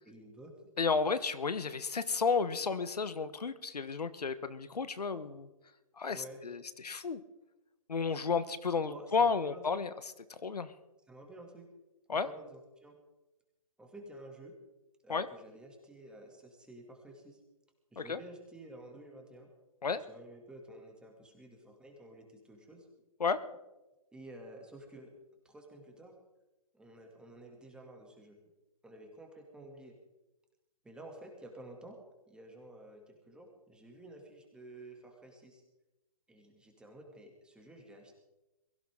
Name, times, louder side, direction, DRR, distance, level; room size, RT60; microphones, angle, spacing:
voice 1, 0.0-0.5 5.1-5.3 6.1-6.4 8.8-9.8 11.1-11.7 12.1-13.0 13.8-14.5 15.0-17.4 17.9-19.5 19.9-22.9 24.1-25.1 25.4-26.1 26.7-28.4 28.8-30.0 30.8-32.0 32.3-35.6 36.3-38.1, right 1 dB, 5° right, 2 dB, 2.6 m, -52 dB
voice 2, 0.8-5.5 6.0-7.2 7.9-9.9 10.3-10.7 12.1-12.3 15.1-15.3 18.0-18.2 19.8-20.0 23.2-23.4, left 5 dB, 80° left, 13 dB, 1.2 m, -32 dB
22.5 x 16.0 x 3.8 m, 1.0 s
figure-of-eight pair, 140°, 20 cm